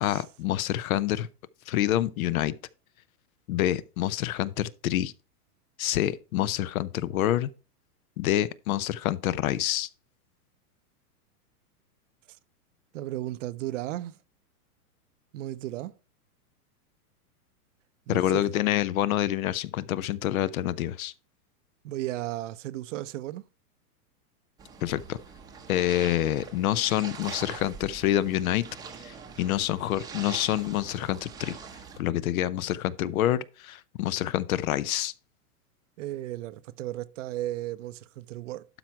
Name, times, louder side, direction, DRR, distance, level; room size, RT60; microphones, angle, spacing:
voice 1, 0.0-1.3 1.7-2.5 3.5-5.1 5.8-7.5 8.2-9.9 18.1-21.1 24.8-25.2 25.7-28.6 29.0-31.6 32.0-35.1, left 13 dB, 65° left, 0.7 m, -27 dB
voice 2, 12.9-14.2 15.3-15.9 18.1-18.4 21.8-23.5 36.0-38.7, right 15 dB, 55° right, 0.6 m, -35 dB
sound 1, 24.6-32.0, right 6 dB, 10° right, 0.7 m, -43 dB
12.0 x 4.6 x 4.5 m
supercardioid pair, 150°, 46 cm